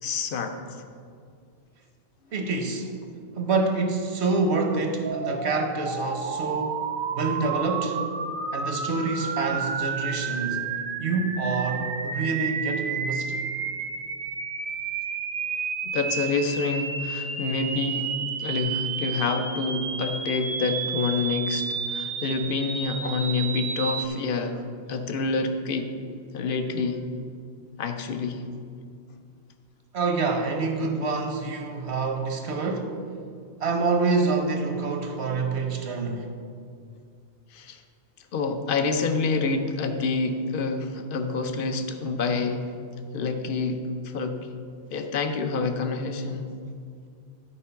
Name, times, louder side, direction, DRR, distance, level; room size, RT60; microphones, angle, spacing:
voice 1, 0.0-0.6 15.8-18.1 18.4-24.6 24.9-25.9 26.3-27.0 27.8-28.5 37.5-37.8 38.3-42.6 43.1-44.4 44.9-46.5, left 4 dB, 55° left, 6 dB, 0.9 m, -27 dB
voice 2, 2.3-2.9 3.4-6.8 7.1-8.0 8.5-10.7 11.0-13.4 29.9-32.9 33.6-36.3, right 3 dB, 75° right, 5 dB, 1.2 m, -27 dB
sound 1, 5.0-24.1, right 5 dB, 55° right, 0.8 m, -31 dB
11.5 x 4.6 x 5.7 m, 2.3 s
omnidirectional pair, 1.1 m